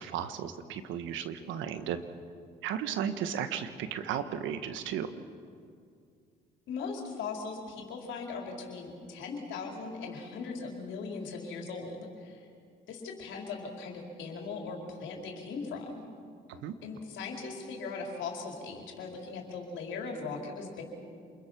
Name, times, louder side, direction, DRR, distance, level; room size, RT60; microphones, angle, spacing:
voice 1, 0.0-2.0 2.6-5.1 16.5-16.7, right 9 dB, 80° right, 10 dB, 1.5 m, -35 dB
voice 2, 6.7-12.5 12.9-16.0 16.8-20.8, left 4 dB, 75° left, 1 dB, 4.4 m, -39 dB
27.5 x 22.0 x 6.1 m, 2.3 s
supercardioid pair, 75°, 20 cm